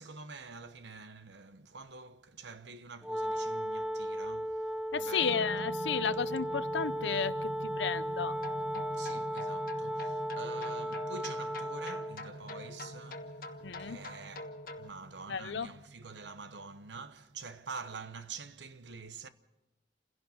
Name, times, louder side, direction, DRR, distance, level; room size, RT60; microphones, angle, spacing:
voice 1, 0.0-5.5 8.9-14.5 14.8-19.3, right 4 dB, 80° right, 1.1 m, -47 dB
Wind instrument woodwind instrument, 3.0-12.2, equal, 5° right, 0.8 m, -36 dB
voice 2, 4.9-8.3 13.6-14.0 15.3-15.7, left 6 dB, 85° left, 0.7 m, -33 dB
sound 1, 5.2-17.8, right 2 dB, 55° right, 0.8 m, -47 dB
sound 2, 8.3-14.9, left 2 dB, 50° left, 1.5 m, -45 dB
28.0 x 16.5 x 5.9 m
head